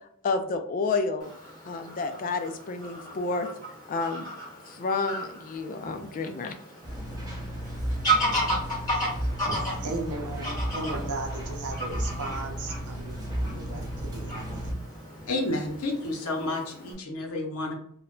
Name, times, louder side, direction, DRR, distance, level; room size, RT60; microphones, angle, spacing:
voice 1, 0.2-1.3 1.6-3.5 3.9-4.3 4.7-6.5, left 4 dB, 40° left, 6 dB, 0.3 m, -30 dB
Fowl / Bird vocalization bird call bird song, 1.2-16.9, right 1 dB, 15° left, 1.1 m, -34 dB
sound 1, 6.8-14.7, equal, 15° right, 0.8 m, -34 dB
voice 2, 8.9-14.7, right 2 dB, 85° right, 3 dB, 0.6 m, -37 dB
voice 3, 15.3-17.7, left 2 dB, 75° left, 2 dB, 0.7 m, -30 dB
2.2 x 2.1 x 3.7 m, 0.65 s
head